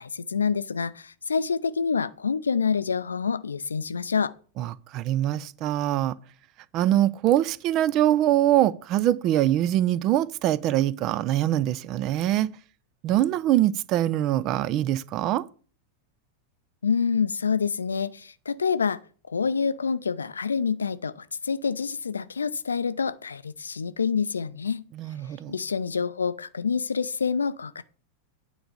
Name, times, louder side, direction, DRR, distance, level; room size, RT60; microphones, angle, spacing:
voice 1, 0.0-4.3 16.8-19.0 19.3-24.8 25.5-27.8, left 5 dB, 75° left, 0.5 m, -27 dB
voice 2, 4.6-6.2 6.7-12.5 13.0-15.5 24.9-25.5, right 13 dB, 40° right, 0.5 m, -23 dB
9.0 x 4.9 x 6.8 m
figure-of-eight pair, 90°, 0 cm